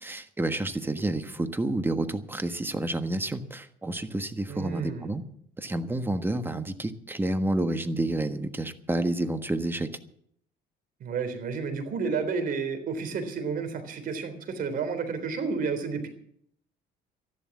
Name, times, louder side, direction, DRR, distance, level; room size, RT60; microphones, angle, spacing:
voice 1, 0.0-5.2 5.6-9.9, right 1 dB, 10° right, 9 dB, 1.4 m, -29 dB
voice 2, 4.5-5.1 11.0-16.1, right 5 dB, 55° right, 8 dB, 3.7 m, -31 dB
13.0 x 11.5 x 7.2 m, 0.65 s
cardioid pair, 110°, 17 cm